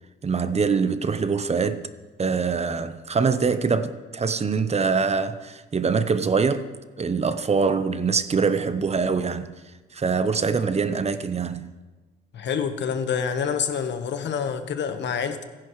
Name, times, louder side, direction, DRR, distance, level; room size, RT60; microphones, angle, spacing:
voice 1, 0.2-1.9 2.2-6.7 7.0-9.5 9.9-11.7, right 5 dB, 30° right, 0.9 m, -24 dB
voice 2, 12.3-15.4, left 7 dB, 65° left, 1.3 m, -27 dB
28.5 x 11.0 x 3.2 m
cardioid pair, 90°, 20 cm